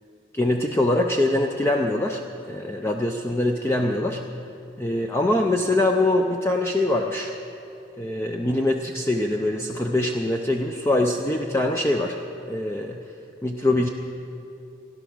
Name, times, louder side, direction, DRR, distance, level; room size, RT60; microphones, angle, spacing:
voice 1, 0.3-2.2 2.5-4.2 4.8-7.3 8.0-12.2 12.5-13.0 13.4-13.9, left 1 dB, 15° left, 2 dB, 0.5 m, -23 dB
16.5 x 11.0 x 6.2 m, 2.8 s
head